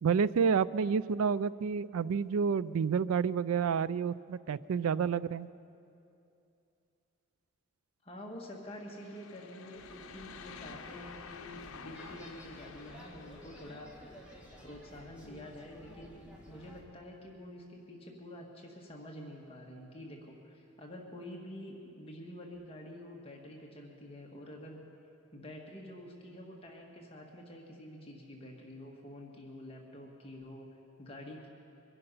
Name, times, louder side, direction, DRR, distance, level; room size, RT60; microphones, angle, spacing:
voice 1, 0.0-5.5, right 6 dB, 80° right, 18 dB, 0.4 m, -29 dB
voice 2, 8.0-13.9 14.6-24.8 25.3-30.7 31.0-31.5, left 1 dB, 25° left, -1 dB, 1.6 m, -48 dB
sound 1, 8.7-14.1, left 5 dB, 80° left, 0.8 m, -50 dB
sound 2, 9.7-16.8, equal, 5° right, 1.8 m, -53 dB
23.0 x 11.0 x 5.6 m, 2.6 s
head